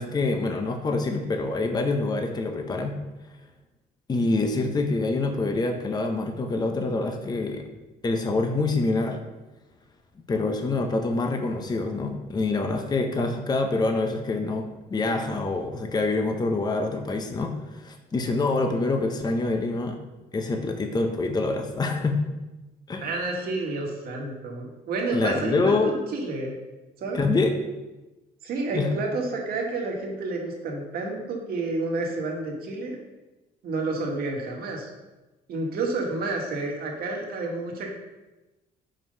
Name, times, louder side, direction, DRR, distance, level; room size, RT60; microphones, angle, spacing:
voice 1, 0.0-2.9 4.1-7.7 8.0-9.2 10.3-20.0 20.3-22.2 22.9-23.1 25.1-26.0 27.1-27.6 28.7-28.9, left 3 dB, 25° left, 5 dB, 0.8 m, -26 dB
voice 2, 23.0-26.5 27.0-27.2 28.4-33.0 33.6-34.9 35.5-37.9, right 3 dB, 65° right, 0 dB, 1.8 m, -30 dB
5.9 x 4.7 x 5.4 m, 1.1 s
cardioid pair, 110°, 17 cm